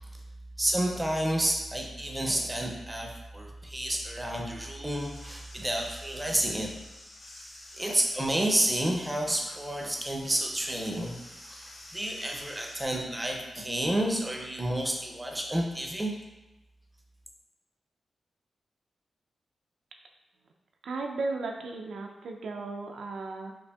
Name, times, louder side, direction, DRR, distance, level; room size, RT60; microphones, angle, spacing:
voice 1, 0.6-6.7 7.8-11.2 11.5-16.1, right 1 dB, 10° right, 0 dB, 0.4 m, -30 dB
sound 1, 4.9-12.8, left 1 dB, 50° left, 0.9 m, -50 dB
voice 2, 20.8-23.5, right 3 dB, 85° right, 2 dB, 0.4 m, -35 dB
5.2 x 2.4 x 2.2 m, 0.99 s
wide cardioid pair, 175°, 0 cm